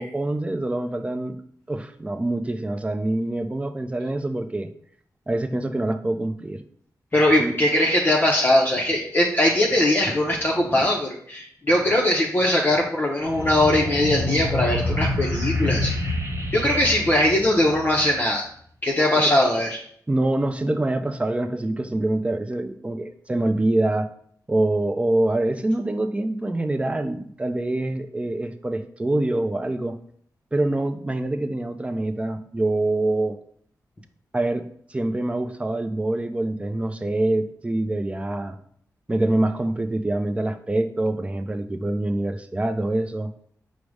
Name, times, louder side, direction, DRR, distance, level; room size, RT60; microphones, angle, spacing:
voice 1, 0.0-1.4 1.7-4.7 5.3-6.6 7.4-7.5 19.1-19.3 20.1-24.1 24.5-30.0 30.5-33.4 34.3-34.6 34.9-38.6 39.1-43.3, right 2 dB, 20° right, 8 dB, 0.4 m, -25 dB
voice 2, 7.1-16.1 16.5-18.5 18.8-19.8, left 1 dB, 30° left, -2 dB, 0.6 m, -20 dB
sound 1, 13.2-18.2, left 2 dB, 40° right, 0.9 m, -27 dB
4.9 x 2.1 x 4.7 m, 0.62 s
cardioid pair, 75°, 7 cm